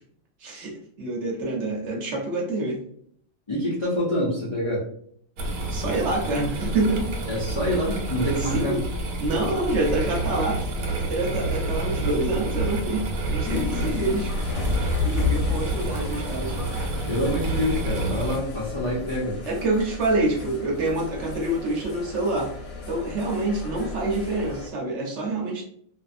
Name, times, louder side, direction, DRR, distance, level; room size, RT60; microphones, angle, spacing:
voice 1, 0.4-2.8 5.7-7.1 8.4-8.8 9.2-14.3 15.0-16.6 19.4-22.5 22.9-25.6, right 2 dB, 60° right, -1 dB, 1.0 m, -27 dB
voice 2, 3.5-4.9 7.3-8.8 13.8-13.9 17.1-19.4, left 1 dB, 55° left, -6 dB, 0.3 m, -26 dB
sound 1, 5.4-18.4, right 2 dB, 90° right, 1.0 m, -29 dB
sound 2, 13.4-24.7, left 3 dB, 80° left, 1.1 m, -32 dB
2.6 x 2.3 x 2.4 m, 0.63 s
omnidirectional pair, 1.4 m